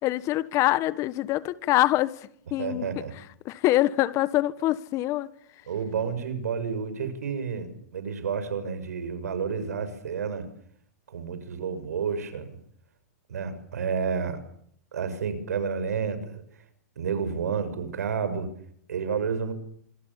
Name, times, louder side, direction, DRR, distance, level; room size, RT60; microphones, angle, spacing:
voice 1, 0.0-2.9 3.4-5.3, left 16 dB, 35° left, 1.5 m, -25 dB
voice 2, 2.6-3.1 5.7-10.5 11.1-12.6 13.3-14.4 14.9-16.4 17.0-18.5 18.9-19.5, right 6 dB, 85° right, 6.6 m, -30 dB
27.0 x 23.5 x 7.3 m
hypercardioid pair, 125°, 8 cm